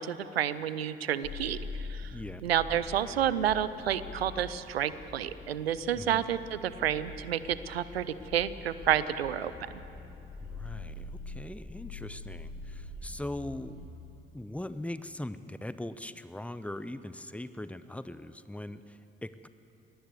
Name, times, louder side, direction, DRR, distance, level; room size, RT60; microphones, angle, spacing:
voice 1, 0.0-2.2 2.4-9.5, right 10 dB, 85° right, 16 dB, 0.6 m, -30 dB
sound 1, 1.2-13.9, left 3 dB, 50° left, 4.4 m, -44 dB
voice 2, 2.1-2.4 5.9-6.3 10.4-13.8 14.3-19.5, left 1 dB, 5° left, 13 dB, 0.9 m, -40 dB
21.5 x 18.5 x 8.0 m, 2.8 s
figure-of-eight pair, 45°, 30 cm